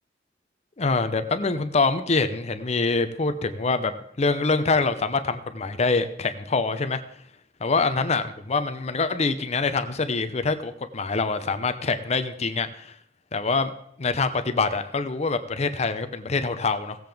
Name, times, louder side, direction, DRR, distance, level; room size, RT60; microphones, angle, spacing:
voice 1, 0.8-3.9 4.2-7.0 7.6-12.9 13.3-13.7 14.0-17.0, left 4 dB, 40° left, 10 dB, 0.7 m, -25 dB
17.5 x 7.7 x 3.5 m, 0.73 s
head